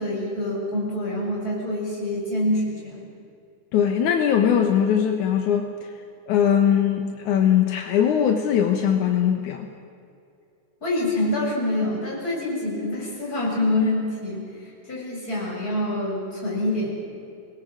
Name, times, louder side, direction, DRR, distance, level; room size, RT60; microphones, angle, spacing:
voice 1, 0.0-3.1 10.8-17.0, left 1 dB, 30° left, -4 dB, 7.9 m, -26 dB
voice 2, 3.7-5.7 6.3-9.7, left 8 dB, 80° left, 4 dB, 2.7 m, -20 dB
25.5 x 20.5 x 7.8 m, 2.5 s
omnidirectional pair, 3.5 m